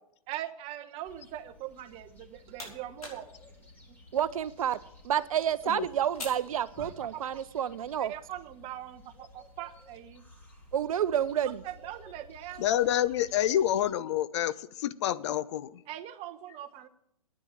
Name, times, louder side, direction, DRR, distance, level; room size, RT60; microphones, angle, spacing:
voice 1, 0.3-3.3 3.9-4.3 5.2-5.3 6.8-7.4 8.0-10.2 11.6-12.7 15.9-16.9, right 12 dB, 35° right, 1.1 m, -42 dB
sound 1, 1.0-13.9, left 2 dB, 10° left, 3.1 m, -54 dB
sound 2, 2.0-7.4, left 2 dB, 90° left, 5.5 m, -49 dB
voice 2, 4.1-4.8 5.0-8.1 10.7-11.6, right 9 dB, 70° right, 0.7 m, -29 dB
voice 3, 12.6-15.8, left 11 dB, 50° left, 0.7 m, -28 dB
9.9 x 9.7 x 8.9 m
hypercardioid pair, 120°, 18 cm